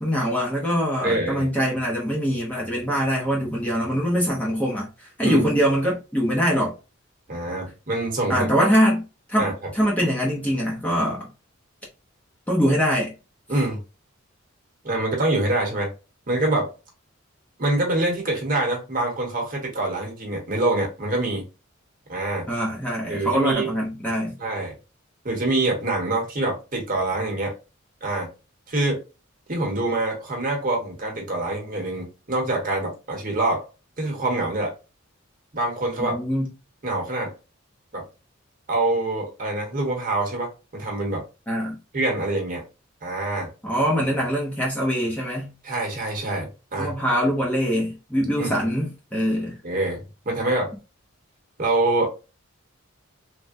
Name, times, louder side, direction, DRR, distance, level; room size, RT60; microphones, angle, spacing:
voice 1, 0.0-6.7 8.3-9.0 9.3-11.3 12.5-13.1 22.5-24.3 36.0-36.5 41.5-41.8 43.6-45.5 46.8-49.6, equal, 5° left, 0.6 m, -23 dB
voice 2, 1.0-1.5 5.2-5.5 7.3-8.5 9.4-9.5 13.5-13.8 14.8-15.9 16.3-16.7 17.6-21.4 22.1-22.5 23.1-23.7 24.4-24.7 25.2-27.5 28.0-28.3 28.7-29.0 29.5-33.6 34.0-34.7 35.5-36.2 36.8-37.3 37.9-38.0 38.7-41.2 41.9-42.6 43.0-43.5 45.6-46.9 48.4-48.5 49.6-50.7 51.6-52.1, right 2 dB, 40° right, 1.0 m, -25 dB
3.3 x 2.2 x 2.5 m
head